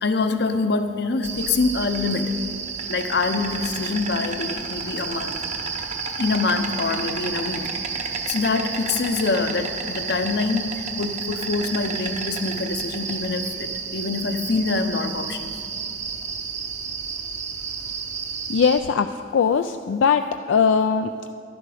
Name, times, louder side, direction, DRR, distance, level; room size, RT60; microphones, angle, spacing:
voice 1, 0.0-2.3 2.9-5.4 6.2-7.7 8.0-15.5, left 3 dB, 60° left, 8 dB, 0.7 m, -25 dB
Insect, 1.2-18.8, right 5 dB, 40° right, 0.8 m, -31 dB
voice 2, 18.5-19.1 19.3-20.2 20.5-21.1, left 6 dB, 80° left, 8 dB, 0.3 m, -19 dB
11.5 x 10.5 x 4.9 m, 2.6 s
head